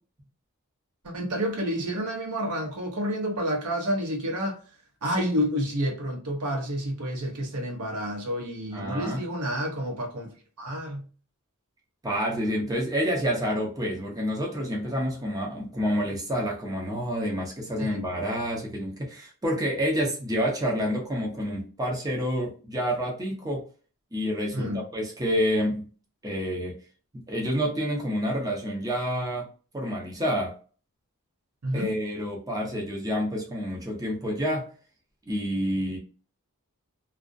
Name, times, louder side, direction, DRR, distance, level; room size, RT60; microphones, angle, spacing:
voice 1, 1.0-4.6 5.0-11.1 17.8-18.1 24.5-24.8 31.6-31.9, equal, 90° right, 0.8 m, -29 dB
voice 2, 8.7-9.2 12.0-23.6 24.1-25.8 26.2-26.8 27.3-29.5 29.7-30.5 31.7-34.7 35.3-36.0, equal, 15° right, 0.7 m, -28 dB
2.4 x 2.1 x 2.5 m
head